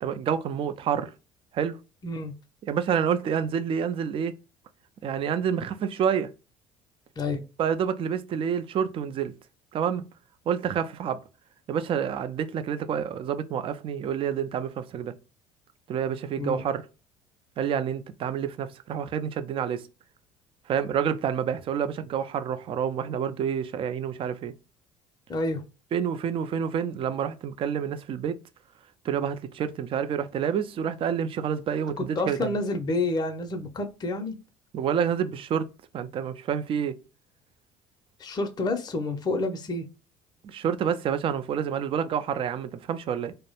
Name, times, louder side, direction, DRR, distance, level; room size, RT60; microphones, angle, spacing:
voice 1, 0.0-1.1 1.5-1.8 2.7-4.3 5.0-6.3 7.6-9.3 9.7-10.0 10.5-11.2 11.7-15.1 15.9-16.9 17.6-19.8 20.7-24.5 25.9-28.4 29.0-32.5 34.7-35.7 35.9-37.0 40.4-43.3, right 8 dB, 40° right, 0.3 m, -28 dB
voice 2, 2.0-2.3 7.2-7.4 16.4-16.6 25.3-25.6 32.0-34.4 38.2-39.8, left 2 dB, 30° left, 0.5 m, -29 dB
2.2 x 2.0 x 2.9 m
hypercardioid pair, 70°, 14 cm